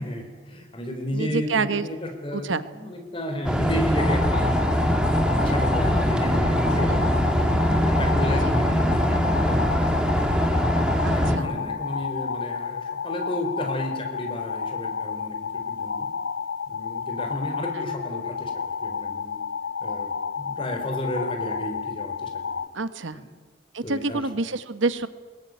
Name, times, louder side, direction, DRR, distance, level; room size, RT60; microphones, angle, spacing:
voice 1, 0.0-4.5 4.9-7.1 7.7-9.7 11.1-16.1 16.7-18.5 18.8-19.4 19.8-22.6 23.1-23.2 23.8-24.2, equal, 25° left, 4 dB, 4.1 m, -33 dB
voice 2, 1.1-1.9 2.3-2.6 6.9-7.0 8.4-8.5 11.0-11.5 17.7-17.8 22.7-23.2 23.7-25.1, right 3 dB, 90° right, 12 dB, 1.2 m, -27 dB
sound 1, 3.4-11.4, equal, 5° right, 2.1 m, -22 dB
sound 2, 4.0-22.7, left 6 dB, 70° left, 0.8 m, -31 dB
sound 3, 7.2-12.2, right 1 dB, 50° left, 6.4 m, -43 dB
21.5 x 20.0 x 9.5 m, 1.4 s
head